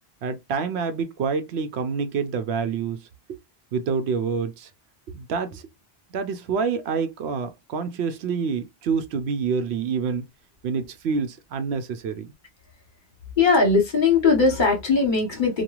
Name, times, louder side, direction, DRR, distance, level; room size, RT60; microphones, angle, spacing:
voice 1, 0.2-3.4 3.7-4.7 5.1-5.6 6.1-10.3 10.6-12.3, right 5 dB, 90° right, 0.9 m, -27 dB
voice 2, 13.4-15.6, left 4 dB, 50° left, 1.2 m, -19 dB
3.0 x 2.3 x 2.3 m
omnidirectional pair, 1.1 m